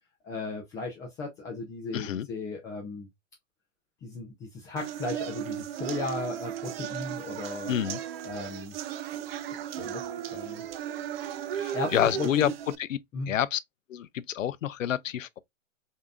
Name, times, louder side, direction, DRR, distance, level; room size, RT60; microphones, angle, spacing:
voice 1, 0.2-3.1 4.0-7.7 8.2-8.8 9.8-10.7 11.7-12.5 13.1-13.4, left 3 dB, 10° left, 0.3 m, -36 dB
voice 2, 1.9-2.3 7.7-8.0 11.5-12.5 12.9-13.0 13.3-13.6 13.9-15.4, left 10 dB, 80° left, 0.6 m, -28 dB
sound 1, 4.8-12.7, right 10 dB, 50° right, 0.5 m, -36 dB
5.0 x 2.7 x 2.3 m
hypercardioid pair, 120°, 39 cm